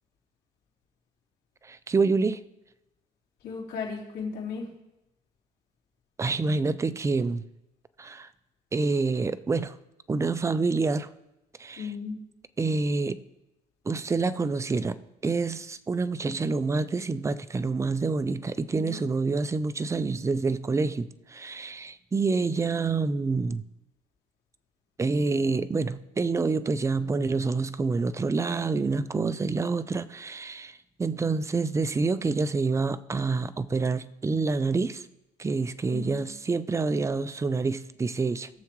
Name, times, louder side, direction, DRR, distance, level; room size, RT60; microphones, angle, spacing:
voice 1, 1.6-2.4 6.2-7.4 8.0-8.3 8.7-9.8 10.1-11.1 11.6-11.9 12.6-13.2 13.8-15.0 15.2-23.6 25.0-35.1 35.4-38.5, right 4 dB, 15° right, 14 dB, 0.5 m, -27 dB
voice 2, 3.4-4.7 11.8-12.2 18.7-19.0 35.9-36.3, left 5 dB, 75° left, -4 dB, 3.4 m, -35 dB
20.5 x 6.9 x 3.1 m, 0.92 s
cardioid pair, 110°, 17 cm